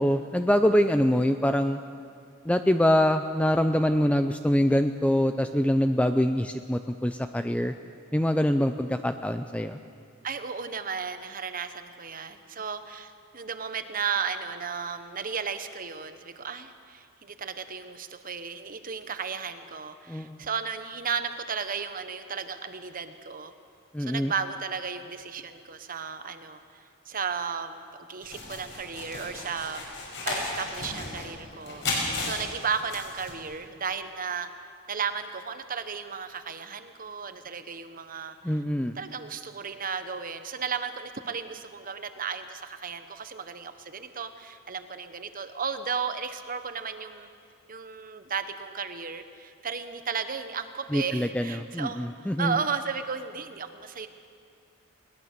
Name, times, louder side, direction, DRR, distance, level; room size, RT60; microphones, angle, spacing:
voice 1, 0.0-1.8 2.4-7.7 8.1-9.8 20.1-20.4 23.9-24.3 38.4-38.9 50.9-52.6, equal, 5° left, 8 dB, 0.5 m, -24 dB
voice 2, 10.2-23.5 24.0-26.6 27.1-27.8 28.1-29.9 30.3-34.5 34.9-38.4 38.9-47.3 47.7-54.1, right 6 dB, 40° right, 10 dB, 1.1 m, -34 dB
sound 1, 28.2-33.5, left 3 dB, 60° left, 6.5 m, -34 dB
21.5 x 19.5 x 6.8 m, 2.3 s
head